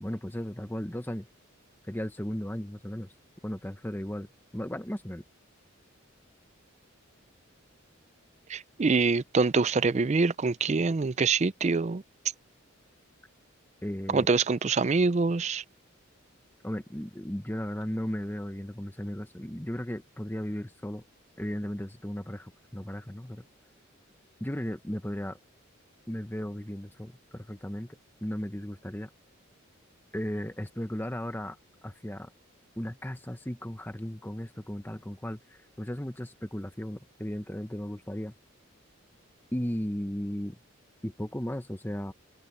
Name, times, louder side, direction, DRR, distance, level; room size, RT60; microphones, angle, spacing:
voice 1, 0.0-1.3 1.9-3.1 3.4-4.3 4.5-5.2 13.8-14.3 16.6-21.0 21.4-23.4 24.4-25.4 26.1-27.9 28.2-29.1 30.1-31.6 31.8-32.3 32.7-38.3 39.5-40.6 41.0-42.1, equal, 10° left, 1.1 m, -35 dB
voice 2, 8.5-12.0 14.1-15.6, right 4 dB, 35° right, 0.4 m, -25 dB
head